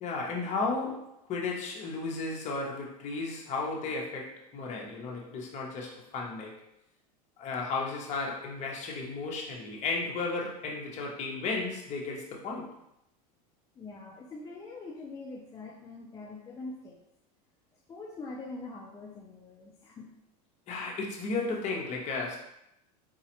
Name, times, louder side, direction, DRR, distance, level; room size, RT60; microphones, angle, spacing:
voice 1, 0.0-6.6 7.4-12.7 20.7-22.4, left 3 dB, 35° left, -1 dB, 0.8 m, -34 dB
voice 2, 13.8-17.0 17.9-20.1, left 3 dB, 15° left, -3 dB, 0.4 m, -43 dB
4.1 x 2.3 x 2.9 m, 0.82 s
supercardioid pair, 135°, 21 cm